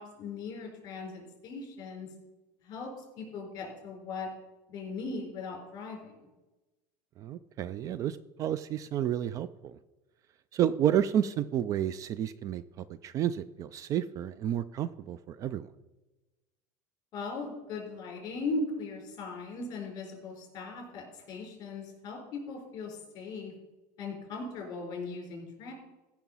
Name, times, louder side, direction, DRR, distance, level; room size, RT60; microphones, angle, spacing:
voice 1, 0.0-2.1 2.6-4.3 4.7-6.3 17.1-23.5 24.0-25.7, left 3 dB, 40° left, 1 dB, 4.5 m, -39 dB
voice 2, 7.2-9.7 10.5-12.6 13.0-15.7, right 10 dB, 35° right, 16 dB, 0.3 m, -30 dB
15.0 x 5.9 x 5.6 m, 1.1 s
supercardioid pair, 145°, 10 cm